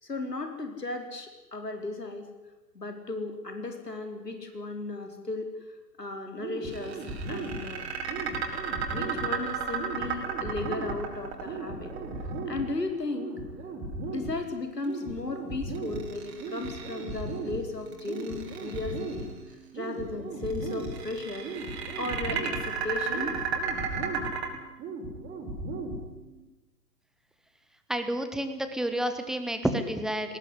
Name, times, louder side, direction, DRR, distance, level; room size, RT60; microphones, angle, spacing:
voice 1, 0.0-2.3 2.7-5.5 6.0-7.0 7.3-7.9 8.9-11.9 12.5-13.3 14.1-19.3 19.7-21.5 22.0-23.4, left 2 dB, 75° left, 5 dB, 4.5 m, -35 dB
sound 1, 6.4-26.4, right 2 dB, 20° right, 5.1 m, -38 dB
sound 2, 6.7-12.9 15.7-17.3 17.9-19.2 20.5-24.5, right 6 dB, 40° right, 4.5 m, -34 dB
voice 2, 27.9-30.4, right 1 dB, ahead, 8 dB, 0.8 m, -30 dB
20.0 x 18.5 x 10.0 m, 1.1 s
figure-of-eight pair, 120°, 48 cm